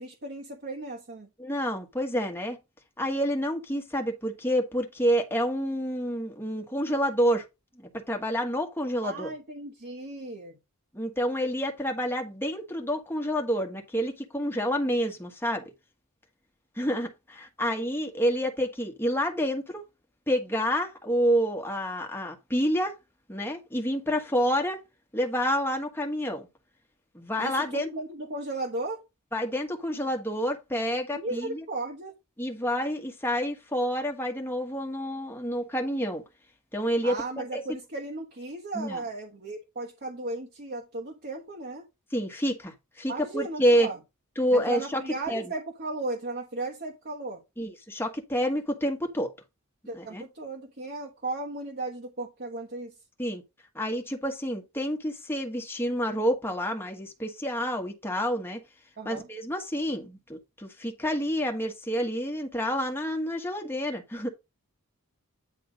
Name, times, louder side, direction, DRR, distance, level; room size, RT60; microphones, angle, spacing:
voice 1, 0.0-1.3 9.0-10.6 27.4-29.0 31.1-32.1 37.0-41.9 43.1-44.0 44.5-47.4 49.9-52.9 59.0-59.3, right 2 dB, 45° right, 1.2 m, -36 dB
voice 2, 1.4-2.6 3.0-7.4 7.8-9.3 10.9-15.6 16.8-19.8 20.3-22.9 23.3-24.8 25.1-26.4 27.1-27.9 29.3-31.6 32.4-36.2 36.7-37.2 37.5-37.6 38.7-39.0 42.1-43.9 44.4-45.0 45.3-45.4 47.6-49.3 49.9-50.2 53.2-53.4 53.7-58.6 59.0-64.3, equal, 10° left, 1.4 m, -28 dB
9.3 x 3.4 x 5.0 m
head